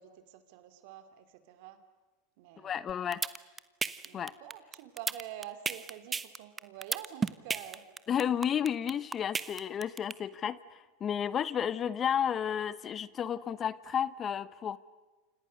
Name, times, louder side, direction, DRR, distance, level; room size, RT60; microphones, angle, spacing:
voice 1, 0.0-1.8 2.4-2.8 4.0-7.8, right 11 dB, 65° right, 9 dB, 3.0 m, -47 dB
voice 2, 2.6-3.2 4.1-4.3 8.1-14.8, left 8 dB, 35° left, 18 dB, 1.0 m, -32 dB
sound 1, 2.9-10.1, right 5 dB, 20° right, 1.1 m, -33 dB
30.0 x 26.5 x 6.7 m, 1.2 s
hypercardioid pair, 100°, 0 cm